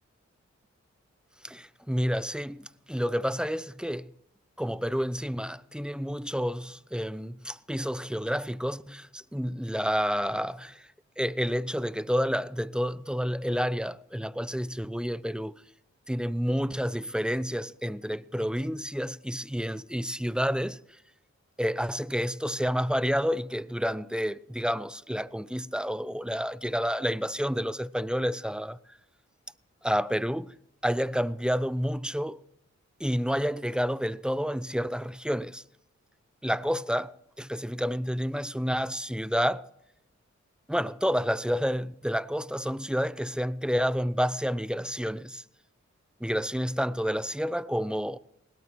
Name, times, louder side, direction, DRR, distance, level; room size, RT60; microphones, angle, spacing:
voice 1, 1.4-4.1 4.6-10.9 11.2-15.6 16.1-20.8 21.6-28.8 29.8-30.5 30.8-32.4 33.0-35.6 36.4-39.7 40.7-45.4 46.2-48.2, equal, 5° right, 0.6 m, -29 dB
20.5 x 17.5 x 3.1 m
cardioid pair, 40°, 29 cm